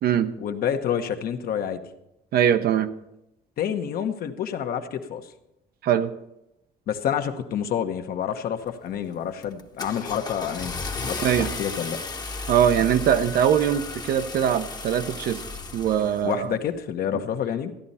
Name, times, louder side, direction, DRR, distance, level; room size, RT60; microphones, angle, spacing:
voice 1, 0.4-1.8 3.6-5.3 6.9-12.4 16.2-17.7, left 8 dB, 60° left, 7 dB, 1.0 m, -28 dB
voice 2, 2.3-2.9 5.8-6.1 11.2-11.5 12.5-15.4 15.7-16.6, right 9 dB, 65° right, 11 dB, 0.8 m, -22 dB
Car / Engine starting, 8.6-9.0 9.4-16.4, left 3 dB, 25° left, 0.9 m, -34 dB
14.5 x 10.5 x 4.2 m, 0.87 s
cardioid pair, 110°, 17 cm